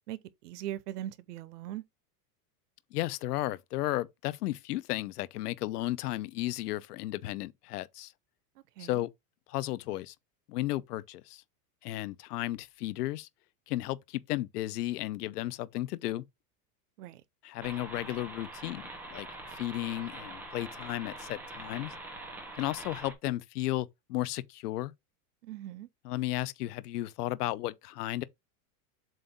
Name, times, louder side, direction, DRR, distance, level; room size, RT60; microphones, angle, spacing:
voice 1, 0.1-1.8 8.8-9.0 17.0-17.2 25.4-25.9, right 13 dB, 85° right, 1.0 m, -40 dB
voice 2, 2.9-8.1 8.8-9.1 9.5-10.1 10.5-11.4 11.8-13.3 13.7-16.2 17.4-18.8 19.1-21.9 22.6-24.9 26.0-28.2, left 16 dB, 80° left, 0.8 m, -34 dB
sound 1, 17.6-23.1, right 2 dB, 5° right, 0.8 m, -44 dB
7.6 x 2.6 x 5.2 m
supercardioid pair, 170°, 46 cm